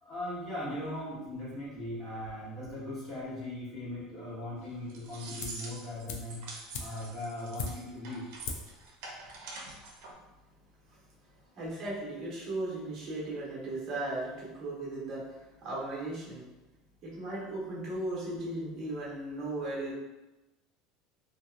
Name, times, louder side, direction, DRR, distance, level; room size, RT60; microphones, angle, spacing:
voice 1, 0.0-6.5 6.8-8.3, left 1 dB, 25° left, -7 dB, 0.9 m, -39 dB
sound 1, 4.6-10.1, right 3 dB, 70° right, 0.6 m, -46 dB
sound 2, 5.4-5.7 6.1-8.1 8.4-8.8 9.1-9.2, left 4 dB, 65° left, 0.4 m, -40 dB
voice 2, 11.6-16.4 17.0-19.9, right 2 dB, 35° right, -5 dB, 0.9 m, -36 dB
2.8 x 2.1 x 2.4 m, 1.0 s
cardioid pair, 160°, 0 cm